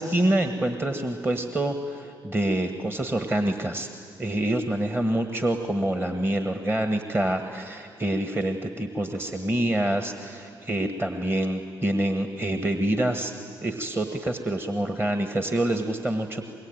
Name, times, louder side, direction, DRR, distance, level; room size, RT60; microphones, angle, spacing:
voice 1, 0.0-3.9 4.2-13.3 13.6-16.5, right 1 dB, 20° right, 6 dB, 1.6 m, -26 dB
25.5 x 22.0 x 9.1 m, 2.5 s
hypercardioid pair, 40°, 11 cm